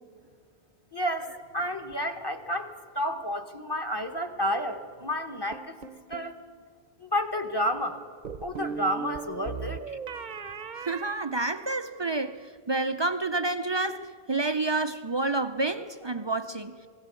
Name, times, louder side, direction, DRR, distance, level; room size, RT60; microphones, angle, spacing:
voice 1, 0.9-5.8 6.1-6.4 7.0-8.0 8.4-9.8, equal, 25° left, 1.1 m, -30 dB
sound 1, 5.5-6.4 8.3-12.0, right 5 dB, 50° right, 0.9 m, -38 dB
voice 2, 10.8-16.8, right 2 dB, 35° right, 0.4 m, -29 dB
19.5 x 17.0 x 8.3 m
omnidirectional pair, 1.1 m